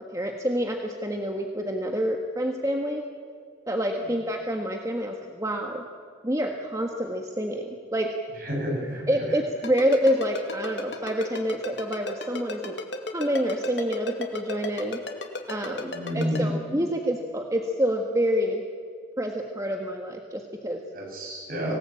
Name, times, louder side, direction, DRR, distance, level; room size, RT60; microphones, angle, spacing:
voice 1, 0.1-3.0 3.7-5.8 6.2-8.1 9.1-12.8 13.1-15.0 15.5-18.6 19.2-20.8, equal, 20° right, 3 dB, 1.5 m, -27 dB
voice 2, 8.4-9.3 15.8-16.5 20.9-21.7, equal, 50° right, 0 dB, 7.7 m, -30 dB
Ringtone, 9.6-16.4, left 3 dB, 85° left, 2.4 m, -33 dB
25.0 x 18.0 x 8.8 m, 2.1 s
head